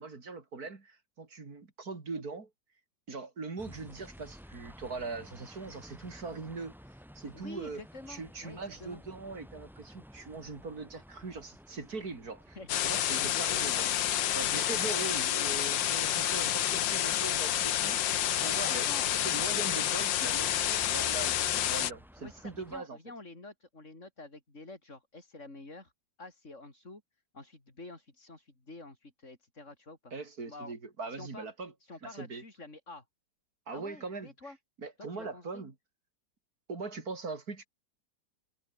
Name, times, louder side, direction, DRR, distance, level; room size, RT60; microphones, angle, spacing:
voice 1, 0.0-2.5 3.1-6.7 7.2-7.8 8.1-12.6 12.8-13.9 14.3-18.9 19.2-23.0 30.1-31.7 32.0-32.4 33.7-34.3 34.8-35.7 36.7-37.7, right 4 dB, 55° right, 3.7 m, -41 dB
sound 1, 3.6-22.8, equal, ahead, 4.9 m, -54 dB
voice 2, 7.3-9.0 12.6-13.9 16.6-17.0 18.6-19.4 22.2-25.9 26.2-27.0 27.3-30.1 30.5-30.7 31.1-31.5 31.8-33.0 33.7-34.6 35.0-35.6, left 2 dB, 40° left, 5.3 m, -48 dB
sound 2, 12.7-21.9, left 11 dB, 85° left, 1.7 m, -29 dB
omnidirectional pair, 2.0 m